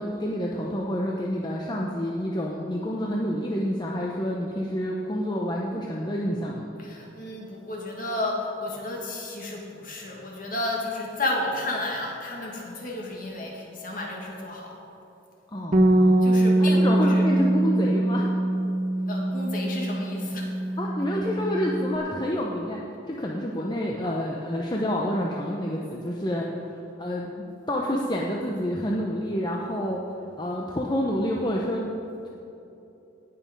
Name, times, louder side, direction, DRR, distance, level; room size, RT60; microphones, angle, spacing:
voice 1, 0.0-6.7 15.5-16.3 16.6-18.3 20.8-30.0 30.4-31.9 32.2-32.3, equal, 20° left, -2 dB, 0.8 m, -28 dB
voice 2, 6.8-14.8 16.2-17.3 19.0-20.5, left 2 dB, 45° left, -1 dB, 2.1 m, -32 dB
Bass guitar, 15.7-22.0, right 1 dB, 40° right, 1.0 m, -23 dB
18.0 x 6.3 x 5.3 m, 3.0 s
head